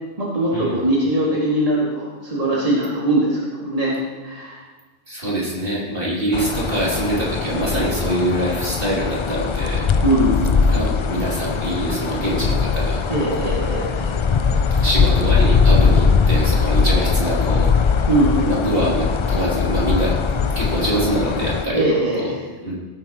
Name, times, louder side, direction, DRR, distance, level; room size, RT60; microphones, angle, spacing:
voice 1, 0.2-3.4 3.6-4.0 4.2-4.6 10.0-10.9 13.1-14.1 18.1-19.0 21.7-22.4, right 1 dB, 35° right, -6 dB, 2.4 m, -21 dB
voice 2, 5.1-9.8 10.7-13.0 13.7-13.9 14.8-17.7 18.5-20.1 20.5-21.8 22.2-22.3 22.6-22.7, right 1 dB, 55° right, -6 dB, 3.3 m, -24 dB
sound 1, 6.3-21.7, left 5 dB, 55° left, 0.3 m, -20 dB
17.5 x 8.9 x 3.0 m, 1.3 s
omnidirectional pair, 1.1 m